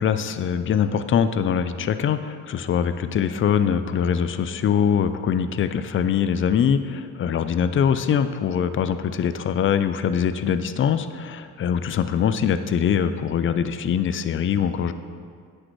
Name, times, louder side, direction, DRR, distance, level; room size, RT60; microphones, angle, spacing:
voice 1, 0.0-14.9, left 8 dB, 45° left, 11 dB, 0.5 m, -23 dB
9.4 x 6.5 x 3.1 m, 2.1 s
cardioid pair, 90°, 30 cm